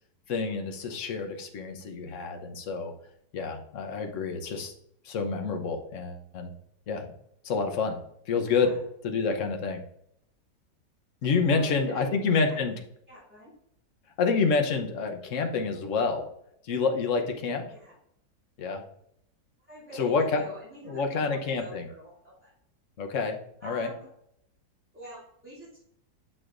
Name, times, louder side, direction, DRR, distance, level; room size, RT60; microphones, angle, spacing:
voice 1, 0.3-2.9 3.3-4.7 5.0-6.5 6.9-7.1 7.4-8.0 8.3-8.7 9.0-9.8 11.2-12.7 14.2-16.2 16.6-17.6 18.6-18.8 19.9-20.4 20.8-21.9 23.0-23.4 23.6-23.9, left 4 dB, 55° left, 5 dB, 1.2 m, -28 dB
voice 2, 8.5-8.8 11.3-12.7 13.1-13.5 17.7-17.9 19.7-22.1 22.4-22.5 23.6-24.1 24.9-25.8, equal, 5° right, -11 dB, 3.0 m, -46 dB
8.6 x 6.4 x 2.5 m, 0.72 s
omnidirectional pair, 1.8 m